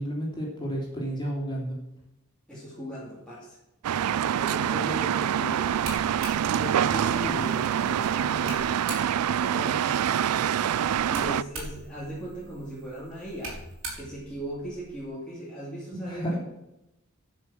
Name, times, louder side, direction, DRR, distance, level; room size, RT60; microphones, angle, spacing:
voice 1, 0.0-1.8 15.9-16.4, equal, 20° left, -3 dB, 3.5 m, -31 dB
voice 2, 2.5-3.6 4.4-5.8 6.5-8.8 9.1-13.6 13.9-16.4, equal, 5° left, -8 dB, 2.6 m, -38 dB
sound 1, 3.8-11.4, right 9 dB, 85° right, 0.4 m, -26 dB
sound 2, 5.6-9.4 10.9-15.1, right 2 dB, 65° right, 4.3 m, -42 dB
11.0 x 6.4 x 6.2 m, 0.91 s
head